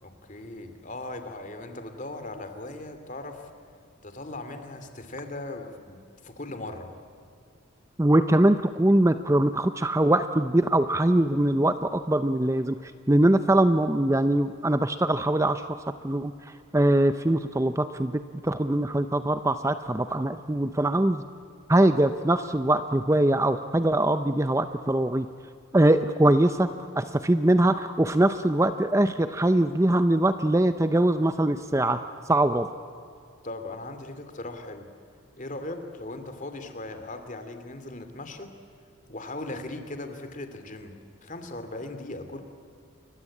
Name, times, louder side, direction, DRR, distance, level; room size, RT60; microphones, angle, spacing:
voice 1, 0.0-3.5 4.0-6.9 33.4-34.9 35.4-38.6 39.1-42.4, left 2 dB, 40° left, 8 dB, 2.5 m, -38 dB
voice 2, 8.0-12.8 13.1-15.8 16.0-16.3 16.7-21.2 21.7-25.3 25.7-26.7 27.0-32.0 32.3-32.7, right 1 dB, 15° right, 10 dB, 0.6 m, -22 dB
29.0 x 23.0 x 8.5 m, 2.4 s
head